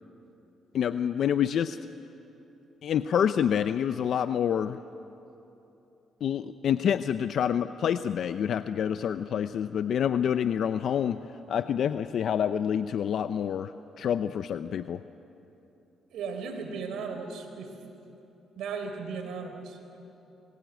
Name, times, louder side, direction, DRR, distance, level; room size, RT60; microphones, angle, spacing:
voice 1, 0.7-1.8 2.8-4.8 6.2-11.2 11.5-15.0, left 8 dB, 65° left, 11 dB, 0.6 m, -27 dB
voice 2, 16.1-17.8 18.6-20.0, right 5 dB, 80° right, 5 dB, 4.2 m, -36 dB
27.5 x 21.5 x 9.3 m, 2.9 s
cardioid pair, 90°, 0 cm